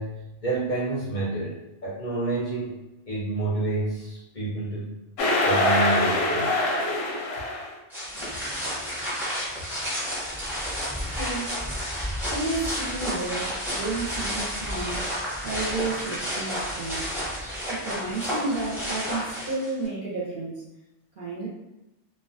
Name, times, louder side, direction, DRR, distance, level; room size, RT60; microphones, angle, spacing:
voice 1, 0.0-2.8 3.1-5.0 5.5-6.6, right 2 dB, 50° left, -7 dB, 0.6 m, -29 dB
sound 1, 5.2-7.7, left 1 dB, 85° left, 0.9 m, -23 dB
sound 2, 7.9-19.9, equal, ahead, 0.6 m, -31 dB
voice 2, 11.0-11.5 12.0-15.0 15.4-17.1 17.7-20.7 21.2-21.5, right 3 dB, 55° right, -6 dB, 0.7 m, -32 dB
2.3 x 2.2 x 2.5 m, 0.94 s
omnidirectional pair, 1.3 m